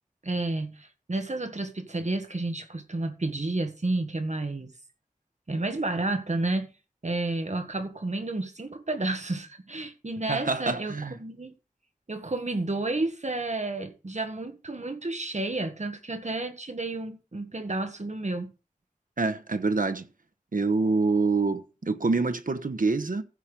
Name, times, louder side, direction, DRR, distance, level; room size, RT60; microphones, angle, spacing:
voice 1, 0.2-4.7 5.5-6.7 7.0-11.5 12.1-18.5, right 2 dB, 60° right, 1.7 m, -31 dB
voice 2, 10.3-11.2 19.2-20.1 20.5-23.2, right 3 dB, 85° right, 1.1 m, -26 dB
15.0 x 5.9 x 5.2 m
wide cardioid pair, 55°, 14 cm